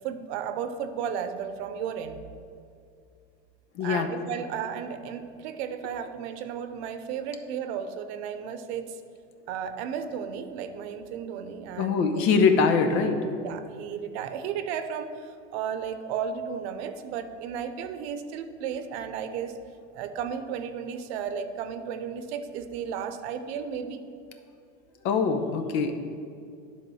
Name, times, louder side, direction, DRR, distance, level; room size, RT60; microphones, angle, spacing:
voice 1, 0.0-2.2 3.8-9.0 9.5-12.0 13.4-19.6 19.9-24.0, right 7 dB, 85° right, 9 dB, 0.7 m, -34 dB
voice 2, 3.7-4.1 11.8-13.2 25.0-25.9, left 5 dB, 75° left, 7 dB, 1.0 m, -23 dB
10.0 x 3.8 x 6.2 m, 2.4 s
supercardioid pair, 125°, 32 cm